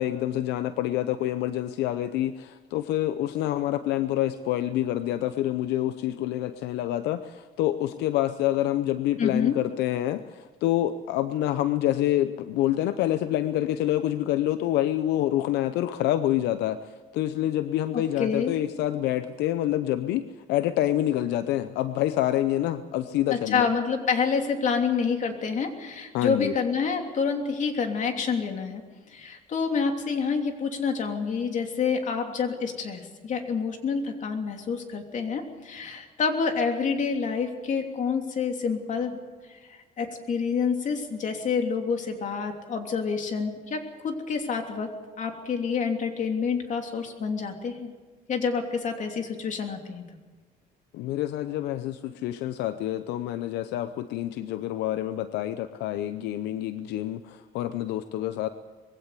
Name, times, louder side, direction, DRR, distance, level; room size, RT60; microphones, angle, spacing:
voice 1, 0.0-16.8 17.1-23.7 26.1-26.5 50.9-58.5, left 13 dB, 85° left, 12 dB, 0.7 m, -27 dB
voice 2, 9.2-9.5 17.9-18.5 23.3-28.8 29.1-39.2 39.7-44.9 45.2-47.9 48.3-50.0, left 5 dB, 45° left, 4 dB, 3.1 m, -28 dB
21.5 x 16.5 x 8.3 m, 1.3 s
cardioid pair, 110°, 17 cm